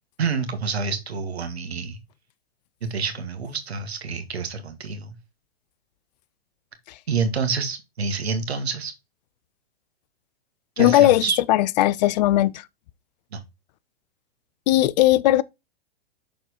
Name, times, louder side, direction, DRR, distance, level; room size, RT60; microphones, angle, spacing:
voice 1, 0.2-2.0 2.8-5.2 7.1-8.9 10.8-11.4 13.3-13.4, right 5 dB, 80° right, 1.7 m, -27 dB
voice 2, 10.8-12.6 14.7-15.4, left 15 dB, 45° left, 0.5 m, -18 dB
6.5 x 4.5 x 4.2 m
hypercardioid pair, 115°, 31 cm